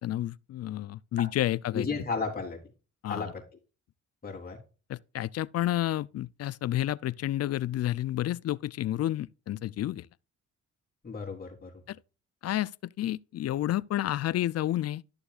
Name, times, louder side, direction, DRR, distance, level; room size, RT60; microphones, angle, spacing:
voice 1, 0.0-2.0 3.0-3.3 4.9-10.1 11.9-12.0 12.4-15.0, left 13 dB, 55° left, 0.5 m, -30 dB
voice 2, 1.7-2.6 3.1-3.4 4.2-4.6 11.0-11.7, left 4 dB, 30° left, 3.5 m, -33 dB
13.0 x 6.9 x 2.5 m
cardioid pair, 90°, 30 cm